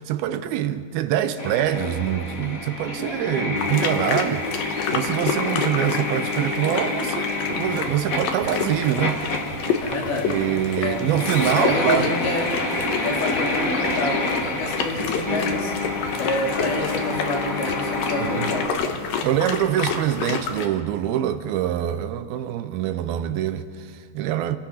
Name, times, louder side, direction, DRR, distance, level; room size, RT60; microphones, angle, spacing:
voice 1, 0.0-9.2 10.3-12.1 18.2-18.5 19.2-24.6, right 11 dB, 80° right, 2.3 m, -25 dB
sound 1, 1.4-18.7, left 2 dB, 45° left, 1.1 m, -28 dB
sound 2, 3.6-20.7, left 6 dB, 65° left, 2.8 m, -30 dB
sound 3, 7.5-20.4, right 3 dB, 60° right, 2.5 m, -43 dB
voice 2, 9.8-10.3 10.8-12.5 13.0-15.7 16.2-18.7, left 2 dB, 85° left, 6.0 m, -28 dB
28.0 x 20.0 x 5.6 m
omnidirectional pair, 4.9 m